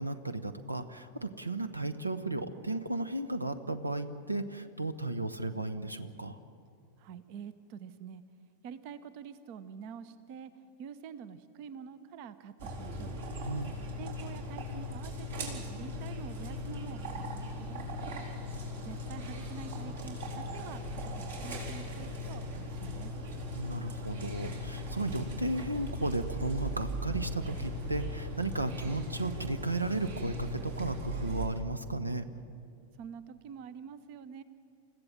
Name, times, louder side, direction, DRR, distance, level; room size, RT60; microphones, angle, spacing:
voice 1, 0.0-6.4 13.5-13.7 23.5-32.3, right 2 dB, 80° right, 12 dB, 1.0 m, -34 dB
voice 2, 7.0-8.2 8.6-13.2 14.0-17.8 18.8-23.1 33.0-34.4, right 7 dB, 45° right, 14 dB, 1.0 m, -47 dB
sound 1, 12.6-31.5, left 1 dB, 60° right, 4.3 m, -38 dB
29.0 x 15.5 x 7.4 m, 2.4 s
figure-of-eight pair, 90°, 0 cm